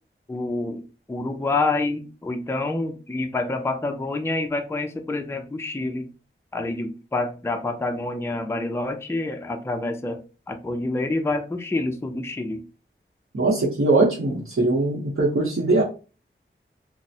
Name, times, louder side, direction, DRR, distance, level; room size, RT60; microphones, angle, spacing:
voice 1, 0.3-6.1 6.5-10.2 10.5-12.6, left 2 dB, 10° left, 5 dB, 0.4 m, -27 dB
voice 2, 13.3-15.8, right 2 dB, 85° right, -6 dB, 0.8 m, -21 dB
3.1 x 2.0 x 2.7 m, 0.34 s
wide cardioid pair, 45°, 21 cm